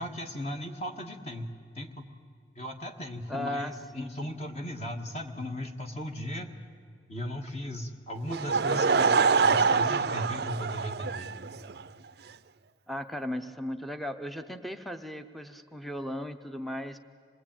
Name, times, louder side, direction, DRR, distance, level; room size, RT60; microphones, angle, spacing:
voice 1, 0.0-1.5 1.7-2.1 2.5-6.5 7.1-11.3, left 1 dB, 35° left, 4 dB, 1.6 m, -37 dB
voice 2, 3.3-4.3 12.9-17.0, left 1 dB, ahead, 5 dB, 0.7 m, -36 dB
Laughter / Crowd, 8.3-11.8, right 5 dB, 55° right, 0.5 m, -25 dB
26.5 x 20.0 x 8.9 m, 2.3 s
head